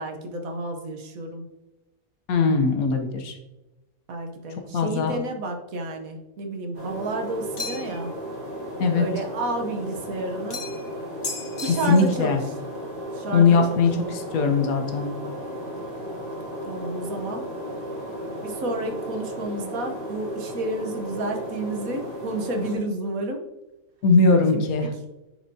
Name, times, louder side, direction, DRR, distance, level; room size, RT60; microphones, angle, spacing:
voice 1, 0.0-1.4 4.1-8.1 8.9-10.6 11.6-12.3 13.1-13.8 16.7-17.5 18.4-23.4 24.5-24.9, right 2 dB, 70° right, 3 dB, 1.3 m, -31 dB
voice 2, 2.3-3.3 4.7-5.1 8.8-9.1 11.6-12.4 13.3-15.1 24.0-24.9, left 4 dB, 70° left, 4 dB, 1.3 m, -20 dB
sound 1, 6.7-22.8, equal, 50° right, 3.0 m, -35 dB
sound 2, 7.6-8.1 10.5-10.9 11.2-12.2, left 3 dB, 40° left, 1.2 m, -34 dB
10.5 x 4.5 x 2.7 m, 1.0 s
omnidirectional pair, 1.6 m